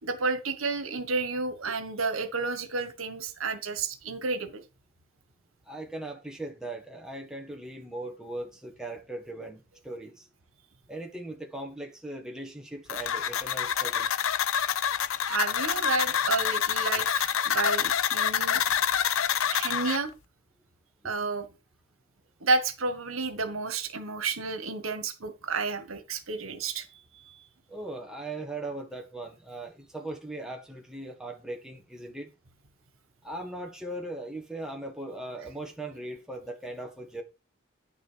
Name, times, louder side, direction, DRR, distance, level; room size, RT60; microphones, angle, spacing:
voice 1, 0.0-4.6 15.2-18.6 19.5-20.1 21.0-21.5 22.4-26.8 27.3-27.4, right 3 dB, 85° right, 1.5 m, -31 dB
voice 2, 5.7-10.3 10.9-14.2 27.7-32.3 33.2-37.2, right 2 dB, 5° right, 1.7 m, -39 dB
sound 1, 12.9-20.0, left 8 dB, 85° left, 0.6 m, -27 dB
10.0 x 6.3 x 4.7 m
head